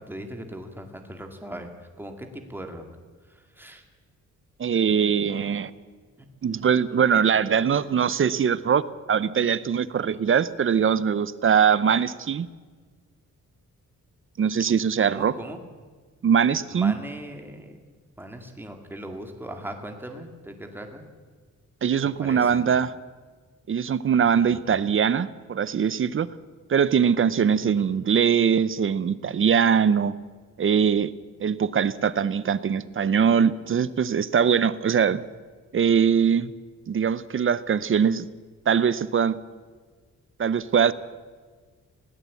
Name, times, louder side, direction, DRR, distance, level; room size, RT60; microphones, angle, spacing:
voice 1, 0.1-1.7 2.0-2.8 3.6-3.8 5.3-5.4 6.5-6.6 15.0-15.6 16.7-17.8 18.2-21.0 22.2-22.7 24.4-24.8 27.6-27.9, right 1 dB, 5° right, 4 dB, 2.2 m, -39 dB
voice 2, 4.6-5.7 6.4-8.8 9.1-12.5 14.4-15.3 16.2-16.9 21.8-22.9 23.7-26.3 26.7-30.1 30.6-31.1 31.4-35.2 35.7-36.5 36.9-38.2 38.7-39.4 40.4-40.9, right 7 dB, 40° right, 16 dB, 0.7 m, -22 dB
20.5 x 17.5 x 8.4 m, 1.5 s
wide cardioid pair, 180°, 31 cm